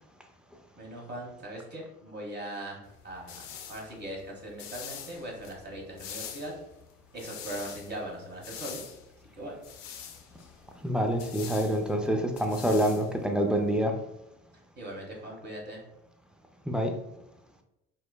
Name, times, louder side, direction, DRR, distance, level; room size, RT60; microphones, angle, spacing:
voice 1, 0.8-6.5 7.1-8.9 9.4-9.5 14.8-15.8, right 1 dB, 30° right, -1 dB, 1.2 m, -40 dB
sound 1, 2.9-13.8, left 8 dB, 65° left, 0.6 m, -45 dB
voice 2, 10.8-14.0 16.7-16.9, right 1 dB, ahead, 3 dB, 0.4 m, -26 dB
4.4 x 2.2 x 2.2 m, 0.89 s
hypercardioid pair, 60°, 36 cm